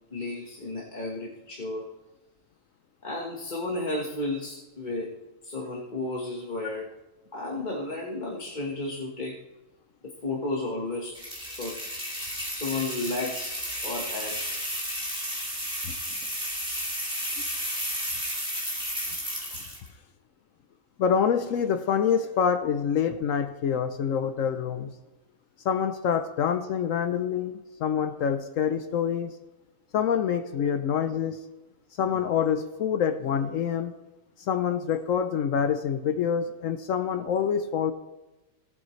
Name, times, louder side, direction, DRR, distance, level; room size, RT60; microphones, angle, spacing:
voice 1, 0.1-1.8 3.0-5.2 5.4-6.9 7.3-9.4 10.2-11.2 11.6-11.8 12.5-14.4 22.1-22.2 30.5-30.7, left 2 dB, 35° left, -2 dB, 1.4 m, -33 dB
perc-rain-shacker-long, 11.1-19.9, equal, 5° right, 3.4 m, -33 dB
voice 2, 21.0-24.9 25.6-29.3 29.9-31.4 32.0-33.9 34.4-37.9, left 7 dB, 70° left, 9 dB, 1.0 m, -26 dB
18.0 x 8.5 x 3.2 m, 1.1 s
omnidirectional pair, 1.5 m